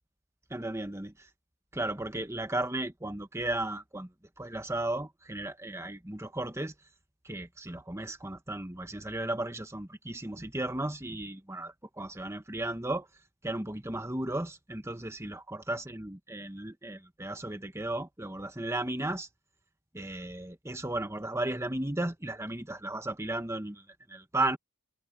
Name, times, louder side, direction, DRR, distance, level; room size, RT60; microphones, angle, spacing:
voice 1, 0.5-1.3 1.7-4.1 4.4-6.7 7.2-13.1 13.4-19.3 19.9-24.6, right 1 dB, 10° right, 1.3 m, -35 dB
head